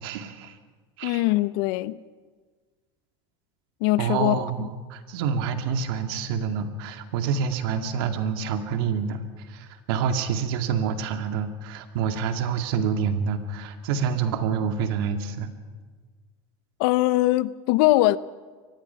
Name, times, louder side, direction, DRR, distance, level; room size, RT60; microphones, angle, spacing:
voice 1, 0.0-0.6 1.0-1.2 4.0-15.5, right 6 dB, 75° right, 2.2 m, -27 dB
voice 2, 1.0-2.0 3.8-4.7 16.8-18.2, left 17 dB, 70° left, 0.7 m, -22 dB
24.0 x 19.5 x 5.8 m
supercardioid pair, 110°, 12 cm